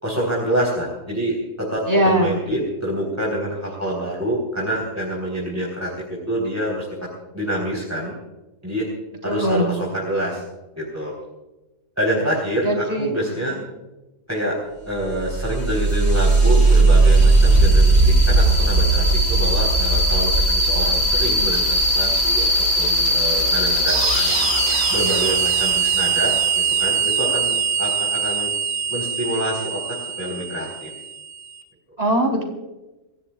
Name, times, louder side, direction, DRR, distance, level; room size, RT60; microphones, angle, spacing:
voice 1, 0.0-6.9 7.3-8.1 8.6-8.9 9.2-10.4 10.8-11.1 12.0-13.6 14.3-14.6 14.9-22.5 22.8-24.4 24.9-28.5 28.9-29.8 30.2-30.9, equal, 10° right, -3 dB, 3.9 m, -26 dB
voice 2, 1.9-2.4 9.2-9.7 12.6-13.1 13.4-13.6 32.0-32.4, right 1 dB, 35° right, 1 dB, 4.3 m, -20 dB
sound 1, 15.1-31.4, right 2 dB, 60° right, 5.2 m, -18 dB
27.5 x 16.0 x 2.4 m, 1.0 s
omnidirectional pair, 1.3 m